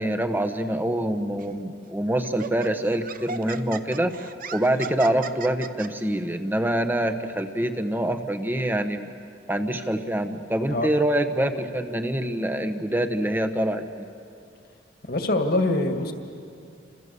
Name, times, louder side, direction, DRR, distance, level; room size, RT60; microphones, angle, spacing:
voice 1, 0.0-9.1 9.5-14.1, right 1 dB, 10° right, 7 dB, 1.2 m, -25 dB
Laughter, 1.4-1.6 2.2-5.9, right 5 dB, 45° right, 0.8 m, -37 dB
voice 2, 15.1-16.1, left 2 dB, 55° left, 5 dB, 2.0 m, -23 dB
29.0 x 26.5 x 6.9 m, 2.5 s
head